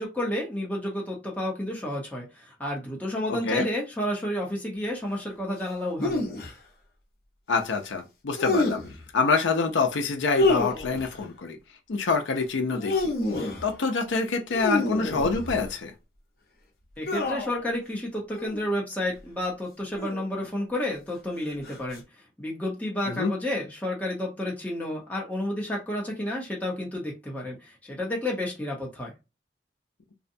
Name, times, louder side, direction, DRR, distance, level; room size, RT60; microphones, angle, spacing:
voice 1, 0.0-6.2 17.0-22.0 22.4-29.1, left 1 dB, 10° left, 0.7 m, -31 dB
voice 2, 3.3-3.7 7.5-8.8 9.1-11.6 11.9-13.0 13.6-15.9 23.1-23.3, left 4 dB, 90° left, 0.5 m, -26 dB
sound 1, 6.0-6.5 8.4-9.0 10.3-11.1 12.6-13.7 14.5-15.7 17.1-17.6 18.3-18.6 19.9-20.5 21.6-22.0, left 2 dB, 50° left, 0.7 m, -27 dB
2.6 x 2.1 x 2.6 m
head